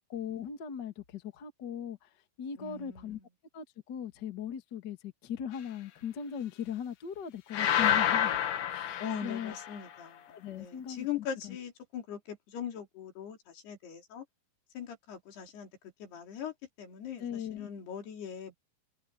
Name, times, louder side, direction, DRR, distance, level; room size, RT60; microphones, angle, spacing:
voice 1, 0.0-2.1 2.4-3.2 3.5-8.4 8.7-9.5 10.3-11.1 11.4-11.6 17.2-17.7, left 8 dB, 40° left, 1.6 m, -39 dB
voice 2, 2.6-3.2 9.0-14.3 14.7-15.7 16.0-18.5, left 8 dB, 90° left, 5.7 m, -41 dB
sound 1, 7.5-9.8, left 10 dB, 65° left, 2.7 m, -29 dB
omnidirectional pair, 4.5 m